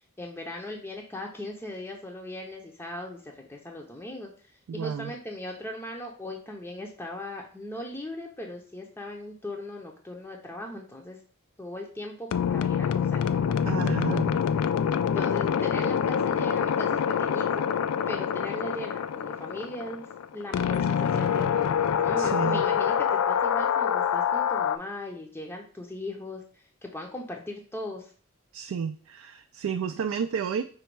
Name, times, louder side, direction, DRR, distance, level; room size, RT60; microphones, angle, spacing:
voice 1, 0.2-4.3 4.7-11.2 11.6-14.2 15.1-17.7 18.1-20.1 20.3-28.1, left 1 dB, 10° left, 0 dB, 0.5 m, -38 dB
voice 2, 4.7-5.1 13.7-14.4 22.2-22.6 28.5-30.6, right 7 dB, 80° right, 6 dB, 0.3 m, -31 dB
sound 1, 12.3-24.8, left 8 dB, 80° left, 0.3 m, -26 dB
5.0 x 2.2 x 4.5 m, 0.43 s
head